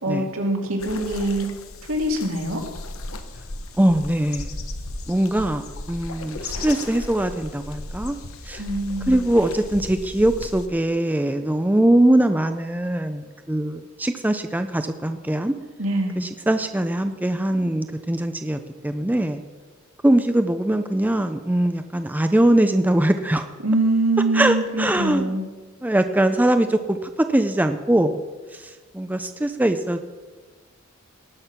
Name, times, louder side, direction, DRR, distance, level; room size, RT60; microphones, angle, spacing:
voice 1, 0.0-1.5 1.9-2.6 8.6-9.2 15.8-16.2 23.6-25.4, right 1 dB, 75° right, 1 dB, 2.4 m, -23 dB
sound 1, 0.8-10.7, left 2 dB, 80° left, 1.1 m, -36 dB
voice 2, 3.8-4.6 5.1-8.2 8.5-8.6 9.1-15.5 16.2-19.4 20.0-23.5 24.3-25.4 25.8-28.2 28.5-30.0, right 1 dB, 10° right, 8 dB, 0.4 m, -21 dB
18.5 x 6.4 x 5.7 m, 1.3 s
head